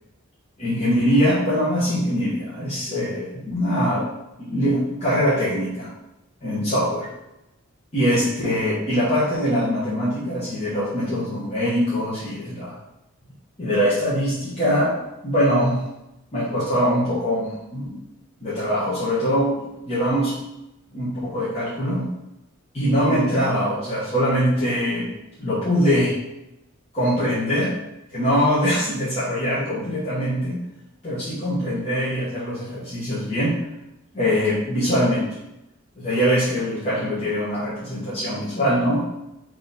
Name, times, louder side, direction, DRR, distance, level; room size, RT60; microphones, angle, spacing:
voice 1, 0.6-4.1 4.4-5.9 6.4-7.1 7.9-12.8 13.6-15.0 15.2-15.8 16.3-17.9 18.4-19.5 19.8-20.3 20.9-22.1 22.7-25.1 25.4-26.1 26.9-27.7 28.1-30.6 31.0-33.6 34.1-35.3 36.0-39.0, equal, 30° left, -11 dB, 1.2 m, -22 dB
3.7 x 3.1 x 4.1 m, 0.90 s
head